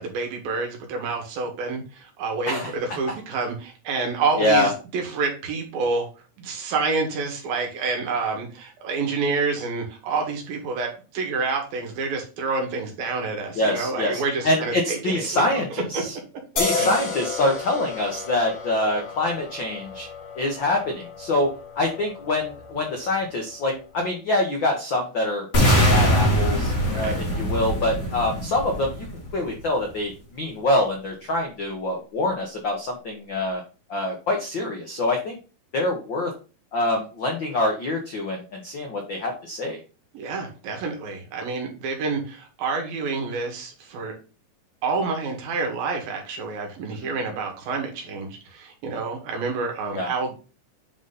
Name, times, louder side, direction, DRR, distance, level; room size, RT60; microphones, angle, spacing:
voice 1, 0.0-6.1 6.4-15.6 15.9-16.0 16.7-16.9 27.0-27.1 40.1-44.2 44.8-50.3, right 4 dB, 80° right, 2 dB, 3.5 m, -28 dB
voice 2, 4.4-4.7 13.5-16.2 16.6-20.1 20.3-21.5 21.8-29.1 29.3-33.6 33.9-35.4 35.7-36.3 36.7-39.8 47.0-47.1 49.9-50.1, left 1 dB, 80° left, 2 dB, 1.0 m, -25 dB
sound 1, 16.6-23.9, left 5 dB, 55° left, 3.8 m, -32 dB
sound 2, 25.5-29.6, equal, 30° left, 1.9 m, -22 dB
9.0 x 4.1 x 4.0 m, 0.34 s
omnidirectional pair, 4.1 m